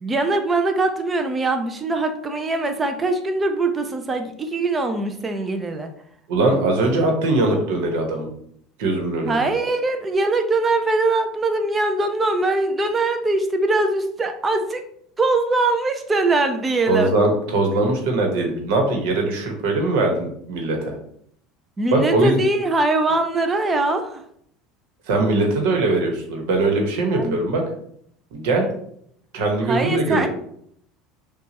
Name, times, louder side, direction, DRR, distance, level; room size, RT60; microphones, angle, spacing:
voice 1, 0.0-5.9 9.3-14.8 15.2-17.1 21.8-24.2 27.1-27.4 29.6-30.3, right 2 dB, 20° right, 6 dB, 0.5 m, -22 dB
voice 2, 6.3-8.3 8.8-9.4 16.9-21.0 21.9-22.4 25.1-27.6 28.3-28.7 29.3-30.3, right 2 dB, 80° right, 2 dB, 1.1 m, -21 dB
5.7 x 2.3 x 2.9 m, 0.68 s
supercardioid pair, 110°, 0 cm